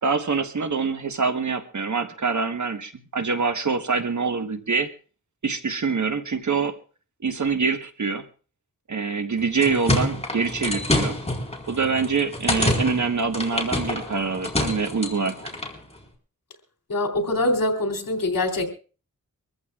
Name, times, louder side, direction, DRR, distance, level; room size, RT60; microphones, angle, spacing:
voice 1, 0.0-4.9 5.4-6.8 7.2-8.2 8.9-11.2 11.7-15.3, right 5 dB, 60° right, 1.3 m, -25 dB
sound 1, 9.4-15.8, left 1 dB, 20° left, 4.2 m, -27 dB
voice 2, 16.9-18.7, left 2 dB, 80° left, 3.1 m, -24 dB
24.5 x 14.5 x 2.4 m
wide cardioid pair, 75°, 33 cm